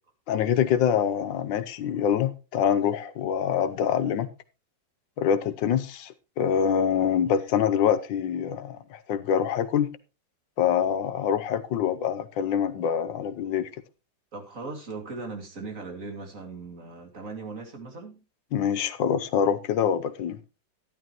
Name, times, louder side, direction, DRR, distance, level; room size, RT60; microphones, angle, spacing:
voice 1, 0.3-4.3 5.2-9.9 10.6-13.7 18.5-20.4, left 8 dB, 75° left, 1.5 m, -25 dB
voice 2, 14.3-18.2, right 3 dB, 45° right, 2.7 m, -38 dB
12.5 x 11.5 x 3.0 m
omnidirectional pair, 2.1 m